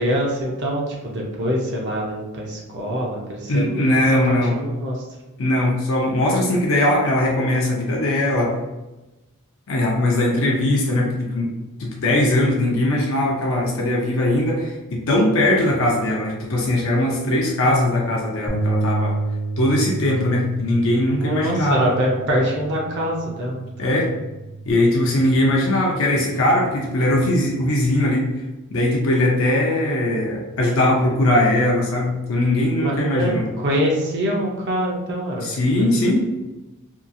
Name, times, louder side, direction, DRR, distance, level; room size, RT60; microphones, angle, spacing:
voice 1, 0.0-4.0 4.3-5.0 21.2-23.9 32.8-35.5 35.8-36.2, equal, 50° right, -2 dB, 0.6 m, -24 dB
voice 2, 3.5-4.5 5.4-8.6 9.7-11.5 11.8-19.2 19.6-21.9 23.8-24.1 24.7-28.3 28.7-33.5 35.4-36.2, left 1 dB, 65° left, -2 dB, 0.5 m, -20 dB
Bass guitar, 18.5-24.7, right 2 dB, 10° left, 0.6 m, -29 dB
2.8 x 2.3 x 2.5 m, 1.0 s
head